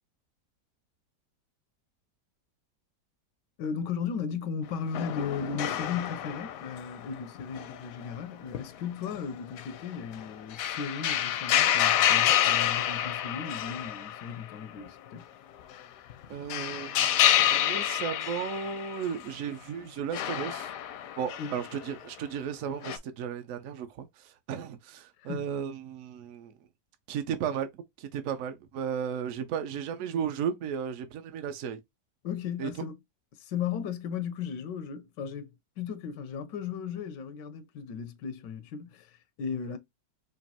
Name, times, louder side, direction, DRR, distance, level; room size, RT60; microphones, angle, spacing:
voice 1, 3.6-15.2 21.4-21.5 25.2-25.5 32.2-33.0 33.3-39.8, left 7 dB, 90° left, 1.3 m, -36 dB
sound 1, 4.9-8.2 8.5-8.6 9.1-9.2 9.6-14.5 14.8-14.9 16.1-19.1 20.1-21.9 22.8-23.0, left 11 dB, 70° left, 0.8 m, -28 dB
voice 2, 16.3-20.7 21.2-26.5 27.1-27.7 28.0-31.8 32.6-32.7, right 7 dB, 65° right, 0.8 m, -34 dB
5.1 x 2.5 x 2.7 m
omnidirectional pair, 1.9 m